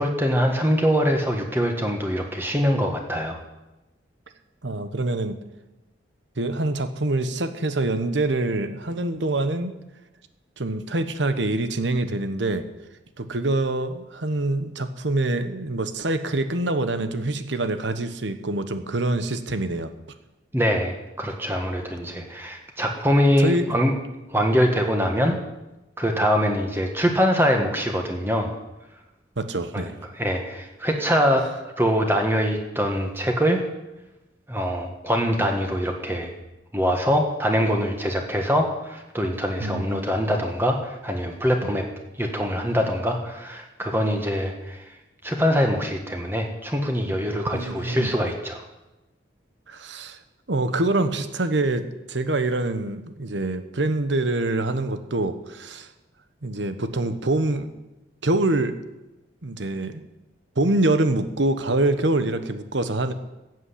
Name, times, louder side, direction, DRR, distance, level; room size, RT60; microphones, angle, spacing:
voice 1, 0.0-3.4 20.5-23.9 24.3-25.4 26.0-28.5 29.7-29.8 30.2-33.6 34.5-36.3 36.7-41.8 42.2-44.8 45.2-48.6, equal, 10° right, 2 dB, 1.5 m, -23 dB
voice 2, 4.6-5.4 6.4-9.7 10.6-12.7 13.2-19.9 23.4-23.8 29.4-30.0 39.6-40.1 41.6-41.7 47.5-48.1 49.7-50.2 50.5-55.9 56.4-57.7 58.2-58.7 59.4-60.0 60.6-63.1, right 2 dB, 75° right, 10 dB, 1.1 m, -25 dB
13.5 x 7.8 x 8.5 m, 1.0 s
head